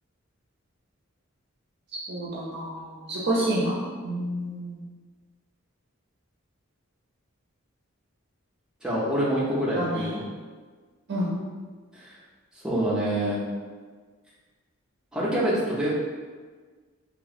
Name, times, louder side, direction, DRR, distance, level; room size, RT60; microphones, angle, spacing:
voice 1, 2.1-4.8 9.7-10.1 11.1-11.3, right 1 dB, 50° right, -5 dB, 0.5 m, -29 dB
voice 2, 8.8-10.2 11.9-12.1 12.6-13.4 15.1-16.0, right 1 dB, 5° right, -8 dB, 0.6 m, -26 dB
3.0 x 3.0 x 2.4 m, 1.5 s
head